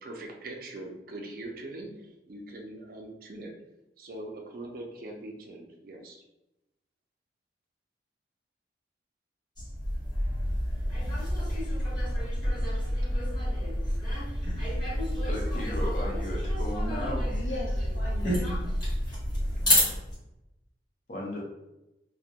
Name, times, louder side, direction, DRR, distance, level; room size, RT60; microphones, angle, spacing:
voice 1, 0.0-3.5 4.0-6.2, right 2 dB, 50° right, 2 dB, 0.4 m, -42 dB
sound 1, 9.6-20.1, equal, 25° left, 0.9 m, -29 dB
voice 2, 15.3-17.5 19.7-19.9 21.1-21.4, left 1 dB, 45° left, -2 dB, 0.6 m, -36 dB
voice 3, 17.3-18.6 19.6-20.0 21.3-21.4, left 1 dB, 85° left, -3 dB, 0.7 m, -40 dB
2.3 x 2.1 x 2.8 m, 0.93 s
head